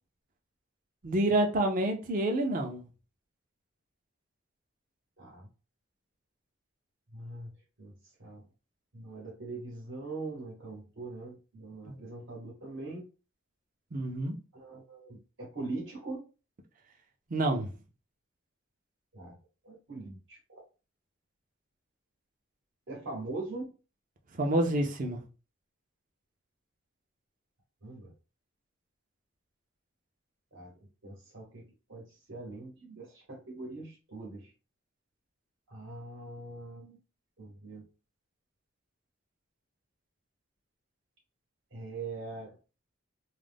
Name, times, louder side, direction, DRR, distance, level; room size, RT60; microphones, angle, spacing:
voice 1, 1.0-2.8 11.9-12.0 13.9-14.3 17.3-17.7 24.3-25.2, right 1 dB, 45° right, 0.5 m, -28 dB
voice 2, 5.2-5.5 7.1-7.5 7.8-7.9 8.2-8.4 8.9-13.1 14.5-16.2 19.1-19.4 19.6-20.6 22.9-23.7 27.8-28.1 30.5-30.7 31.0-34.5 35.7-37.0 37.4-37.8 41.7-42.6, right 2 dB, 70° right, 0.9 m, -42 dB
2.4 x 2.0 x 3.4 m
head